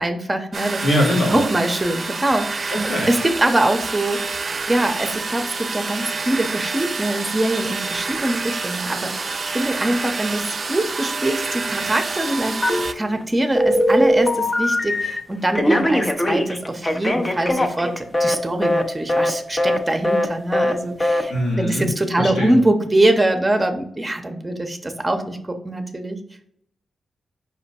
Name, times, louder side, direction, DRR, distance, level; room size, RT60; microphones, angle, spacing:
voice 1, 0.0-0.8 1.3-2.8 3.1-4.2 4.7-26.2, right 1 dB, 20° right, 6 dB, 0.7 m, -23 dB
sound 1, 0.5-12.9, right 4 dB, 50° right, 0.3 m, -28 dB
voice 2, 0.8-1.4 2.7-3.1 21.3-21.9 22.2-22.6, equal, 80° left, -3 dB, 1.6 m, -21 dB
Telephone, 12.6-13.2 13.6-15.2 15.5-18.4 18.6-18.8 19.1-19.3 19.6-19.8 20.0-20.3 20.5-20.7 21.0-21.2, left 1 dB, 25° left, 0.6 m, -20 dB
5.2 x 2.1 x 4.1 m, 0.68 s
cardioid pair, 60°, 0 cm